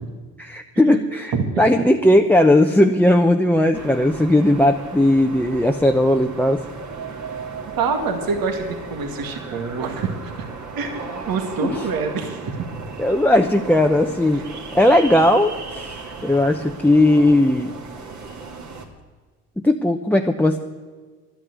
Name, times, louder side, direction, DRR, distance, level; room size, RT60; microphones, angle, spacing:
voice 1, 0.4-6.6 11.7-11.8 13.0-14.4 14.7-17.7 19.6-20.6, left 1 dB, 5° left, 4 dB, 0.8 m, -17 dB
sound 1, 3.7-18.9, right 4 dB, 50° right, 2.5 m, -36 dB
voice 2, 7.8-10.3 10.8-12.6 14.3-14.4, right 5 dB, 70° right, 4 dB, 2.2 m, -26 dB
12.0 x 10.0 x 9.3 m, 1.5 s
cardioid pair, 80°, 36 cm